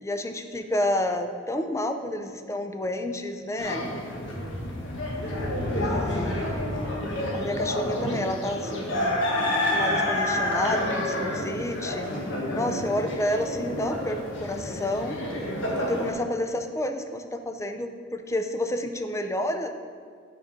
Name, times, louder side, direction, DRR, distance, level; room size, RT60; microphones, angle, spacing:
voice 1, 0.0-3.9 5.8-6.6 7.3-12.1 12.5-15.2 15.7-19.7, left 1 dB, 15° left, 7 dB, 0.4 m, -30 dB
sound 1, 3.6-16.1, left 1 dB, 65° left, 1.2 m, -29 dB
6.8 x 5.8 x 4.9 m, 2.1 s
head